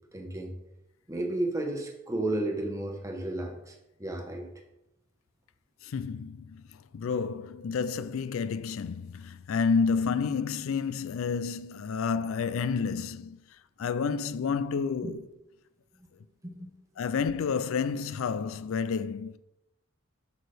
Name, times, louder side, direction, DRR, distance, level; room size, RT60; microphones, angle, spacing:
voice 1, 0.1-0.5 1.1-4.5 15.0-15.1 16.4-16.7, right 1 dB, 15° right, 1.0 m, -33 dB
voice 2, 5.8-6.6 6.9-13.4 13.8-15.2 17.0-19.4, left 5 dB, 80° left, 0.4 m, -30 dB
8.3 x 6.3 x 3.4 m
head